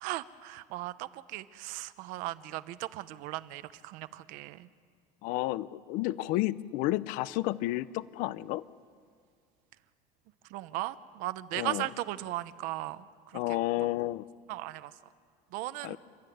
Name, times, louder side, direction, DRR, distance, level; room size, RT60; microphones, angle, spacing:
voice 1, 0.0-4.7 10.5-13.9 14.5-14.9 15.5-16.0, right 16 dB, 60° right, 14 dB, 0.8 m, -37 dB
voice 2, 5.2-8.6 11.5-11.8 13.3-14.2 15.8-16.0, left 17 dB, 55° left, 18 dB, 0.6 m, -31 dB
29.5 x 13.0 x 9.3 m, 2.1 s
cardioid pair, 175°, 16 cm